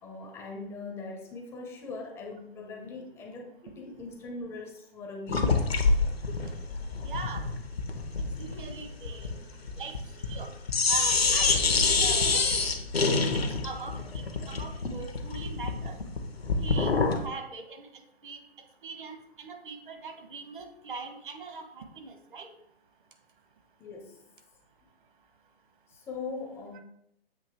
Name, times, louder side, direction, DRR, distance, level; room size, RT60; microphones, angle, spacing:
voice 1, 0.0-5.6 12.6-12.7 23.8-24.2 25.9-26.8, left 3 dB, 10° left, 2 dB, 0.5 m, -41 dB
sound 1, 5.3-10.4 10.7-17.3, left 4 dB, 80° left, 1.0 m, -27 dB
voice 2, 7.0-7.5 8.4-9.3 9.8-9.9 10.2-10.5 10.9-12.5 13.6-16.0 16.6-17.9 18.2-18.4 18.8-22.5, right 4 dB, 55° right, 6 dB, 1.2 m, -41 dB
7.7 x 2.9 x 4.4 m, 0.76 s
figure-of-eight pair, 125°, 30 cm